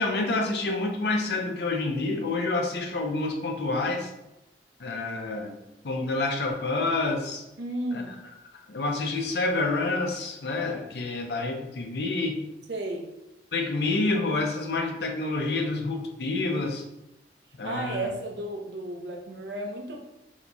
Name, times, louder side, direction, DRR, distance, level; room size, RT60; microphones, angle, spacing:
voice 1, 0.0-4.1 4.8-5.6 5.8-7.4 7.9-8.2 8.5-12.4 13.5-16.8 17.6-18.1, left 3 dB, 65° left, 3 dB, 0.5 m, -28 dB
voice 2, 7.6-8.1 12.7-13.1 17.6-20.0, right 1 dB, 80° right, 1 dB, 0.7 m, -33 dB
2.9 x 2.3 x 3.9 m, 0.92 s
head